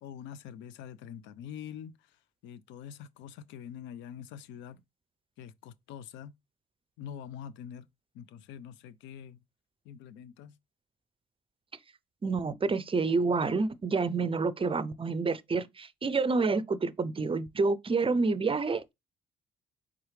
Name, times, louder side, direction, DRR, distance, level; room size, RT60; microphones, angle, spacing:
voice 1, 0.0-1.9 2.4-4.8 5.4-6.3 7.0-7.9 8.1-9.4 9.9-10.5, left 9 dB, 70° left, 0.5 m, -45 dB
voice 2, 12.2-18.9, right 4 dB, 25° right, 0.5 m, -28 dB
4.7 x 3.5 x 3.2 m
hypercardioid pair, 50°, 20 cm